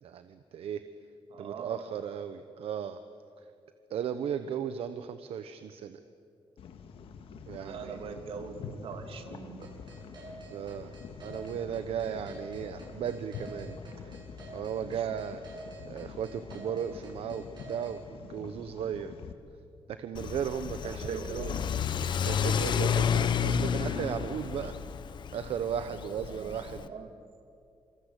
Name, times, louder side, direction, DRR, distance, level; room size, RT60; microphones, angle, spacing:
voice 1, 0.0-0.8 1.4-3.0 3.9-6.0 7.5-8.1 10.5-14.2 14.5-15.4 15.9-19.1 19.9-21.7 22.3-24.8 25.3-26.8, right 8 dB, 90° right, 10 dB, 1.0 m, -36 dB
voice 2, 1.3-1.8 7.6-9.7 20.8-21.5 26.3-27.2, right 6 dB, 75° right, 6 dB, 2.7 m, -42 dB
sound 1, 6.6-19.3, left 5 dB, 70° left, 1.9 m, -46 dB
sound 2, 9.6-18.0, right 3 dB, 50° right, 7.6 m, -49 dB
Car / Accelerating revving vroom, 20.2-26.9, left 7 dB, 55° left, 1.0 m, -31 dB
27.5 x 25.5 x 8.3 m, 2.5 s
wide cardioid pair, 180°, 10 cm